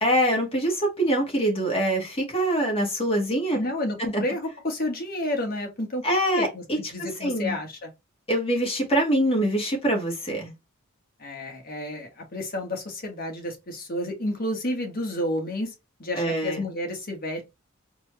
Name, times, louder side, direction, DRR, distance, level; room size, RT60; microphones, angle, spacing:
voice 1, 0.0-3.6 4.0-4.2 6.0-6.8 7.2-7.6 8.3-10.5 16.1-16.6, right 1 dB, 30° left, 1.8 m, -24 dB
voice 2, 3.5-6.0 6.3-6.6 6.9-7.9 11.2-15.7 16.0-17.4, left 1 dB, 45° left, 1.5 m, -30 dB
4.5 x 3.0 x 3.1 m
head